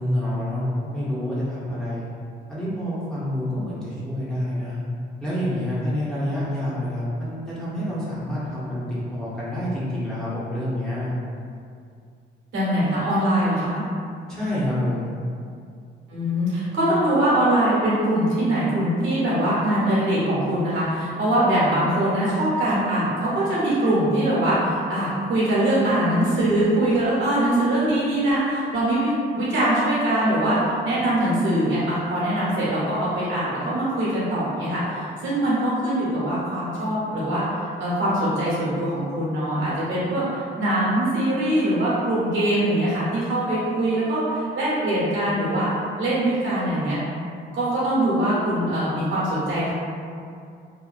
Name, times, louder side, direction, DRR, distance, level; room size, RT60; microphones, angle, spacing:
voice 1, 0.0-2.0 2.5-4.8 5.2-11.1 14.3-15.1, left 1 dB, 5° left, -10 dB, 0.9 m, -27 dB
voice 2, 12.5-13.8 16.1-45.7 46.0-47.0 47.5-49.7, right 1 dB, 75° right, -9 dB, 1.1 m, -22 dB
2.9 x 2.2 x 2.4 m, 2.4 s
cardioid pair, 90°, 20 cm